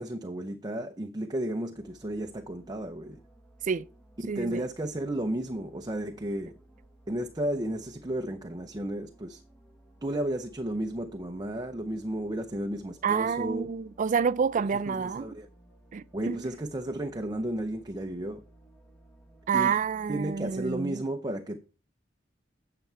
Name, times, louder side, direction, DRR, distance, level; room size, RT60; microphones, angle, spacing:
voice 1, 0.0-3.2 4.2-6.5 7.1-9.4 10.0-13.7 14.9-15.5 16.1-18.4 19.5-19.7 20.1-21.6, right 1 dB, 20° right, 0.7 m, -33 dB
sound 1, 1.7-20.8, right 1 dB, 5° left, 1.2 m, -58 dB
voice 2, 4.3-4.6 13.0-15.3 15.9-16.5 19.5-21.0, right 6 dB, 40° right, 0.4 m, -28 dB
9.4 x 6.7 x 4.5 m
head